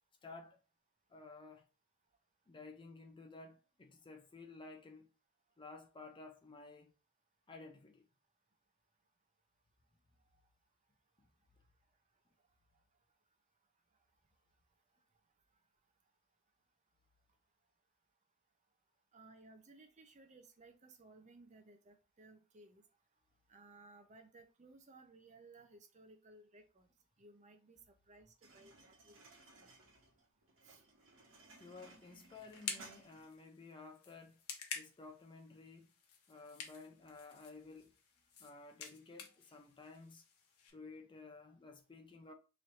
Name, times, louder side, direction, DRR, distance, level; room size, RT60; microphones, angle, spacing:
voice 1, 0.2-0.6 1.1-1.6 2.5-5.1 5.6-6.9 7.5-8.1 11.2-11.3 31.6-34.4 34.7-35.9 36.3-37.9 38.4-40.2 40.7-42.3, left 3 dB, 20° left, 0.4 m, -54 dB
voice 2, 19.1-22.8 23.5-26.9 27.2-29.2 29.5-29.7 30.6-30.8 39.3-39.4, right 2 dB, 35° right, 0.6 m, -60 dB
sound 1, 28.4-33.5, right 3 dB, 60° right, 1.2 m, -60 dB
sound 2, 31.5-40.7, left 6 dB, 90° left, 0.8 m, -51 dB
3.1 x 2.6 x 4.2 m
head